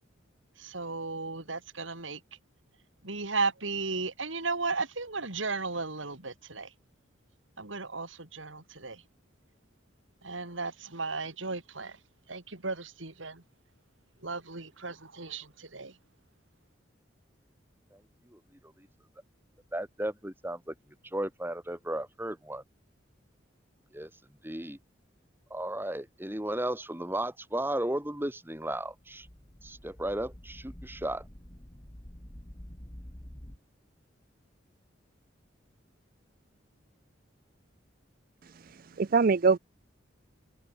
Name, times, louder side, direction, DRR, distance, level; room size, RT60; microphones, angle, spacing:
voice 1, 0.6-2.2 3.0-6.7 7.6-9.0 10.2-12.0 12.3-13.4 14.2-16.0, right 3 dB, 85° right, 3.5 m, -35 dB
voice 2, 19.7-20.7 21.1-22.6 23.9-24.1 24.4-24.8 25.5-29.3 29.6-31.2, right 1 dB, 10° right, 3.2 m, -34 dB
sound 1, 28.6-33.6, equal, 25° left, 2.1 m, -48 dB
voice 3, 38.4-39.6, right 4 dB, 50° right, 0.5 m, -25 dB
head